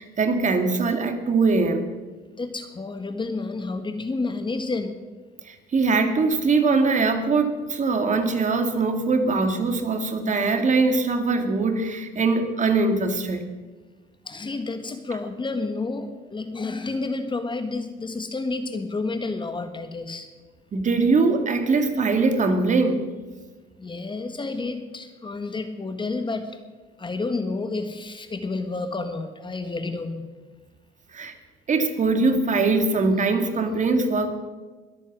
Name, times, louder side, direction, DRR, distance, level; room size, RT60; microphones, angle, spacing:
voice 1, 0.0-1.9 5.4-13.5 20.7-23.1 31.1-31.3 31.7-34.4, right 3 dB, 40° right, 6 dB, 2.3 m, -22 dB
voice 2, 2.4-5.0 14.2-20.3 23.8-26.6 27.0-30.3, left 3 dB, 25° left, 8 dB, 1.6 m, -30 dB
22.5 x 8.5 x 6.2 m, 1.3 s
supercardioid pair, 90°, 19 cm